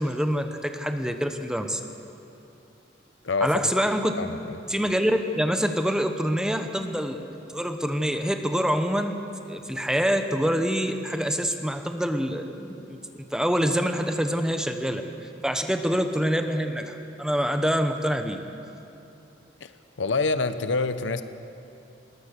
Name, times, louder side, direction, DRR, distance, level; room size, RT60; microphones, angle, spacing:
voice 1, 0.0-1.8 3.4-4.3 4.7-9.2 9.5-13.0 13.3-15.0 15.4-18.4, equal, 5° right, 6 dB, 0.9 m, -26 dB
voice 2, 4.1-4.7 19.6-19.7 20.0-21.2, left 3 dB, 75° left, 11 dB, 0.8 m, -26 dB
20.5 x 19.5 x 6.6 m, 2.8 s
head